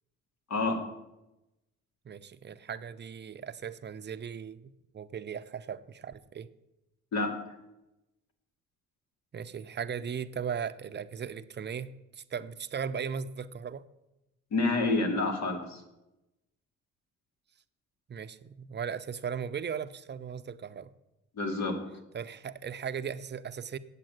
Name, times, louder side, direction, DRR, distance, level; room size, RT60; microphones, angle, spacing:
voice 1, 0.5-0.8 7.1-7.4 14.5-15.8 21.4-21.8, left 3 dB, 65° left, 4 dB, 2.4 m, -28 dB
voice 2, 2.0-6.5 9.3-13.8 18.1-20.9 22.1-23.8, right 7 dB, 35° right, 12 dB, 0.6 m, -37 dB
8.4 x 7.7 x 8.9 m, 0.95 s
cardioid pair, 90°, 30 cm